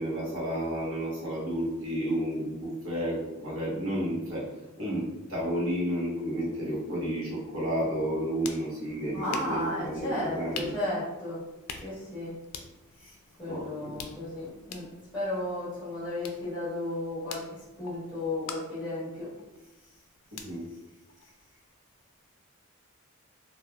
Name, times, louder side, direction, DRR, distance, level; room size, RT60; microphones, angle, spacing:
voice 1, 0.0-4.5 4.8-10.7 13.5-14.0 20.3-20.6, equal, 70° right, -6 dB, 1.0 m, -31 dB
sound 1, 8.0-21.7, left 6 dB, 80° left, 0.3 m, -47 dB
voice 2, 9.1-11.4 11.8-12.3 13.0-14.9 15.1-19.3, left 1 dB, 5° right, -12 dB, 1.0 m, -34 dB
2.9 x 2.3 x 2.3 m, 1.0 s
head